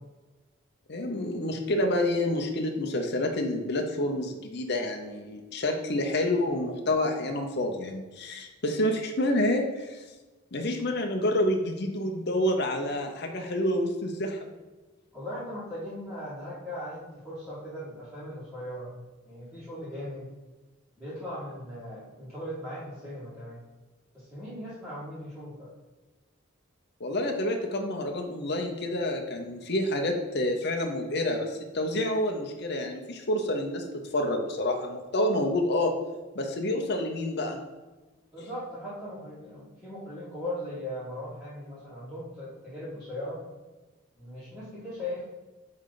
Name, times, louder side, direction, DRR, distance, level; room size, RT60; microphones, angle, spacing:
voice 1, 0.9-10.0 10.5-14.5 27.0-33.8 34.1-35.9 36.3-37.6 38.4-38.5, left 1 dB, 50° left, 3 dB, 0.8 m, -28 dB
voice 2, 15.1-19.0 19.3-20.3 21.0-23.6 24.1-25.7 38.3-43.4 44.2-45.2, left 1 dB, ahead, -13 dB, 1.9 m, -38 dB
8.6 x 3.3 x 4.0 m, 1.2 s
head